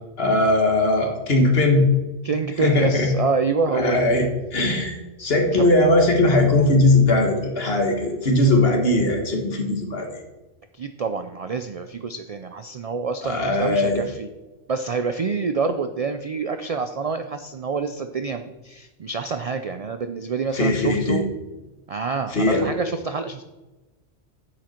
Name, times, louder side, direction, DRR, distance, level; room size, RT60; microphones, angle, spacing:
voice 1, 0.2-1.9 2.6-3.1 3.7-4.3 4.5-10.1 13.2-14.0 20.5-21.2 22.3-22.7, left 2 dB, 55° left, 2 dB, 1.8 m, -19 dB
voice 2, 2.2-4.1 5.5-5.7 10.7-14.3 14.7-21.2 21.9-23.4, right 4 dB, 70° right, 8 dB, 0.3 m, -27 dB
9.2 x 7.7 x 4.4 m, 1.1 s
omnidirectional pair, 1.2 m